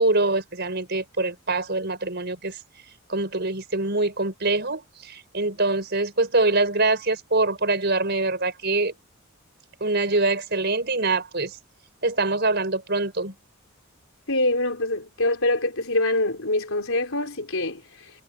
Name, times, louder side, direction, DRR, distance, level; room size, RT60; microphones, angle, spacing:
voice 1, 0.0-2.6 3.1-8.9 9.8-11.6 12.0-13.3, right 2 dB, 50° right, 5.4 m, -24 dB
voice 2, 14.3-18.1, left 2 dB, 70° left, 4.2 m, -25 dB
head